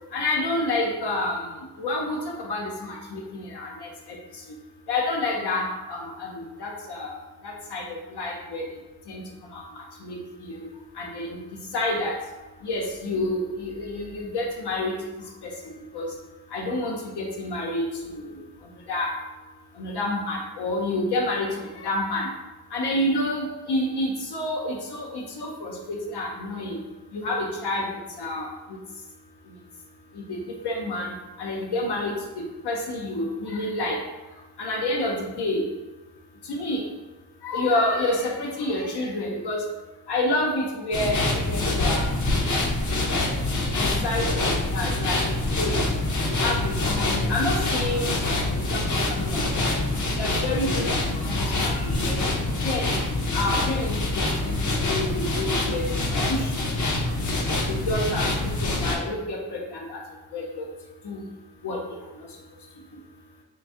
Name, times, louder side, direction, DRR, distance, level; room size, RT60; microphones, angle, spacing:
voice 1, 0.1-1.4 1.8-3.9 4.9-7.2 7.4-8.7 9.1-9.2 9.5-9.6 10.0-10.7 11.0-11.4 11.7-12.2 12.6-15.0 15.4-15.5 15.9-16.1 16.5-18.1 18.9-19.1 19.8-22.3 22.7-26.8 27.1-28.6 30.3-34.0 34.6-35.6 36.5-36.8 37.4-39.6 40.1-42.1 42.3-42.4 43.0-43.3 43.7-45.8 46.3-49.6 50.2-52.2 52.6-53.0 53.3-54.6 54.8-55.9 56.3-56.5 57.7-60.0 60.3-60.6 61.0-61.2 61.6-61.8, left 1 dB, 85° left, -1 dB, 0.7 m, -29 dB
sound 1, 40.9-59.0, left 2 dB, 50° left, 0.7 m, -25 dB
3.8 x 2.5 x 3.6 m, 1.1 s
wide cardioid pair, 120°, 39 cm